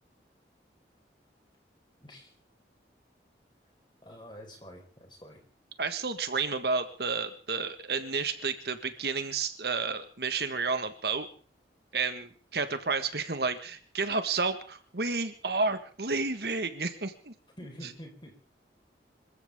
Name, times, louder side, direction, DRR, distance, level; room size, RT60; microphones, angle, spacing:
voice 1, 2.0-2.3 4.0-5.4 17.6-18.3, equal, 25° left, 2 dB, 4.7 m, -47 dB
voice 2, 5.8-11.3 11.9-17.3, right 4 dB, 65° right, 9 dB, 1.6 m, -31 dB
26.5 x 14.5 x 3.7 m, 0.41 s
head